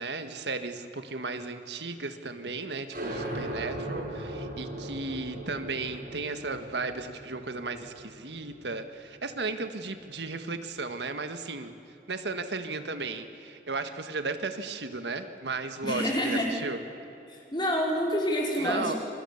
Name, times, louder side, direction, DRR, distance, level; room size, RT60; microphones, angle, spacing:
voice 1, 0.0-11.7 12.1-16.8 18.6-18.9, right 3 dB, 75° right, 8 dB, 1.6 m, -35 dB
sound 1, 2.9-10.2, right 1 dB, 50° right, 5.9 m, -39 dB
voice 2, 15.8-16.5 17.3-19.0, equal, 25° left, -1 dB, 5.0 m, -28 dB
27.5 x 23.5 x 7.1 m, 3.0 s
head